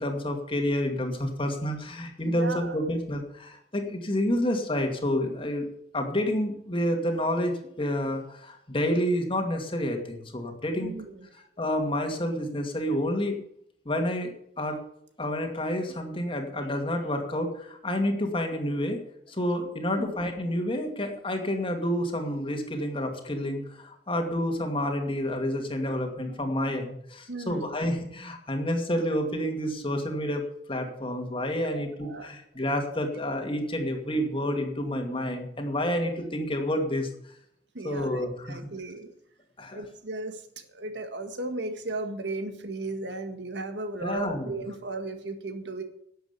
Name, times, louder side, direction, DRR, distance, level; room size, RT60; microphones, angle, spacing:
voice 1, 0.0-5.7 5.9-10.9 11.6-13.4 13.9-14.3 14.6-14.8 15.2-19.0 19.3-30.4 30.7-37.1 37.8-38.6 39.6-39.8 44.0-44.5, equal, 30° left, 4 dB, 2.2 m, -29 dB
voice 2, 2.2-2.8 10.8-11.3 19.9-20.1 27.3-27.7 31.7-32.3 37.7-38.2 38.5-39.1 39.7-40.4 40.7-45.8, right 2 dB, 65° right, 7 dB, 1.7 m, -35 dB
12.5 x 8.0 x 8.2 m, 0.72 s
head